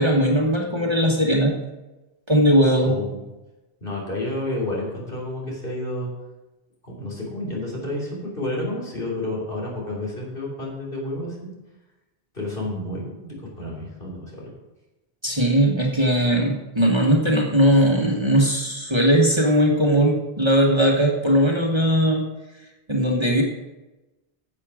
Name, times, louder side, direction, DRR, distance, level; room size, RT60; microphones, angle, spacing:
voice 1, 0.0-1.5 2.3-3.0 15.2-22.3 22.9-23.4, equal, 25° right, -1 dB, 1.4 m, -19 dB
voice 2, 2.6-3.2 3.8-6.1 6.8-11.5 12.3-14.5, left 1 dB, 60° left, -4 dB, 3.5 m, -30 dB
11.0 x 7.5 x 5.0 m, 1.1 s
omnidirectional pair, 1.1 m